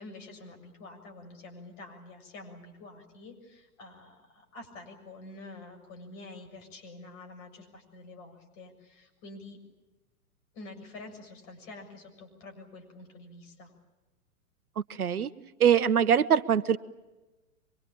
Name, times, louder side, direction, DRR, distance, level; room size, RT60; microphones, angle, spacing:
voice 1, 0.0-9.6 10.5-13.7, left 2 dB, 40° left, 4 dB, 7.1 m, -47 dB
voice 2, 15.0-15.3 15.6-16.8, right 8 dB, 80° right, 14 dB, 1.1 m, -22 dB
25.0 x 23.0 x 8.8 m, 1.1 s
hypercardioid pair, 115°, 44 cm